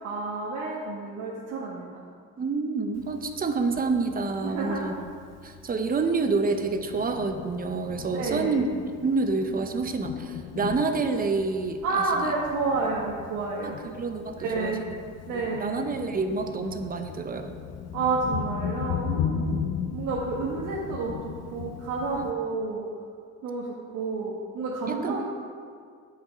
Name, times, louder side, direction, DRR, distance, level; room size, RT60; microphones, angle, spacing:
voice 1, 0.0-2.1 4.4-4.9 8.2-8.6 11.8-13.8 14.4-14.8 15.3-15.8 17.9-22.8 23.4-25.2, right 3 dB, 65° right, -5 dB, 1.3 m, -30 dB
voice 2, 2.4-4.9 5.4-8.7 9.0-12.0 13.6-14.9 15.3-17.5 19.4-19.7 22.2-22.3 24.9-25.2, right 4 dB, 25° right, 6 dB, 0.7 m, -28 dB
Thunder, 3.0-22.3, left 7 dB, 55° left, 0.6 m, -37 dB
8.0 x 6.5 x 5.0 m, 2.1 s
cardioid pair, 110°, 32 cm